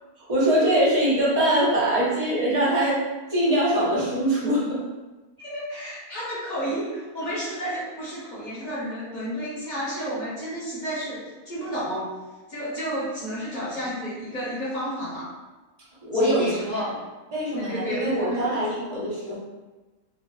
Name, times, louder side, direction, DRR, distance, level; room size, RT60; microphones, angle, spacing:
voice 1, 0.2-3.0 3.3-4.8 16.0-16.9 17.3-19.4, right 1 dB, 35° right, -7 dB, 0.6 m, -23 dB
voice 2, 5.4-12.1 12.5-15.3 16.1-16.9 17.6-18.9, equal, 35° left, -11 dB, 0.9 m, -31 dB
3.3 x 2.2 x 2.3 m, 1.2 s
omnidirectional pair, 1.7 m